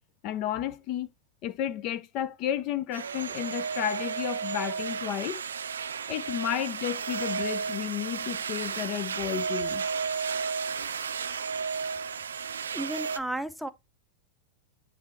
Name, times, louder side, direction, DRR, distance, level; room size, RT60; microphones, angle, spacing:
voice 1, 0.2-1.1 1.4-5.4 6.1-9.8, left 11 dB, 40° left, 0.7 m, -32 dB
sound 1, 2.9-13.2, right 6 dB, 70° right, 0.5 m, -33 dB
voice 2, 12.7-13.7, right 1 dB, ahead, 0.7 m, -33 dB
9.5 x 4.1 x 4.4 m
figure-of-eight pair, 90°, 0 cm